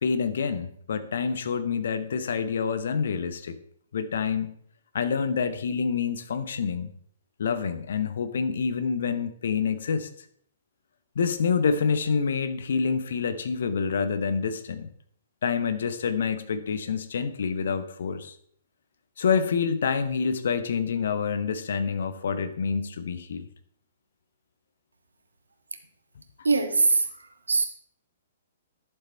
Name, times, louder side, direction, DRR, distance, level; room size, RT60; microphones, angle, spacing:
voice 1, 0.0-3.6 3.9-4.5 4.9-6.9 7.4-10.1 11.1-14.9 15.4-18.3 19.2-23.5, left 6 dB, 55° left, 11 dB, 0.9 m, -27 dB
voice 2, 26.4-27.6, right 4 dB, 70° right, 7 dB, 1.4 m, -23 dB
11.5 x 7.1 x 4.4 m, 0.63 s
figure-of-eight pair, 115°, 0 cm